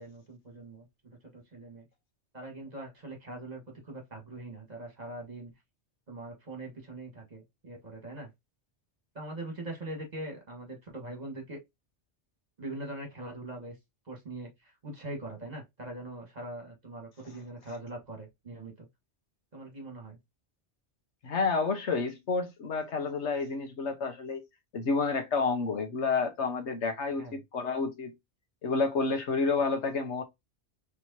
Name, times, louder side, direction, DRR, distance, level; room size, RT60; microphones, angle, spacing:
voice 1, 0.0-1.9 2.3-5.5 6.1-8.3 9.1-11.6 12.6-13.7 14.1-18.9 19.5-20.2 27.2-27.4, right 2 dB, 40° right, 1.6 m, -42 dB
voice 2, 21.2-24.4 24.7-28.1 28.6-30.2, left 4 dB, 80° left, 1.3 m, -29 dB
4.5 x 3.4 x 2.7 m
omnidirectional pair, 1.2 m